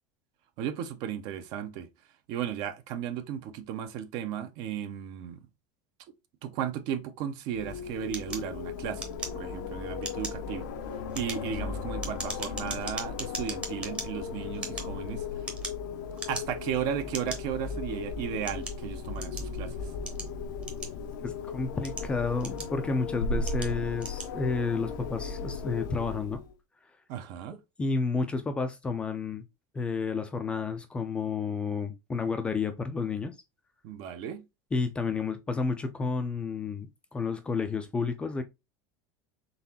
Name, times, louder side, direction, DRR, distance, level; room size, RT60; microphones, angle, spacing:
voice 1, 0.6-1.9 2.3-5.4 6.4-9.0 9.3-10.7 11.2-15.4 16.3-19.9 27.1-27.6 33.8-34.4, right 9 dB, 45° right, 0.6 m, -35 dB
Wind, 7.5-26.5, left 4 dB, 80° left, 0.6 m, -36 dB
sound 1, 8.1-9.7 10.0-10.5 11.0-14.1 14.5-15.9 16.2-16.7 17.1-17.4 18.1-19.5 20.1-21.2 21.7-22.9 23.4-23.7 24.0-24.3, right 2 dB, 10° right, 0.8 m, -39 dB
voice 2, 21.2-26.4 27.8-29.4 29.7-33.3 34.7-38.4, left 4 dB, 10° left, 0.4 m, -31 dB
4.0 x 3.7 x 2.7 m
cardioid pair, 175°, 10 cm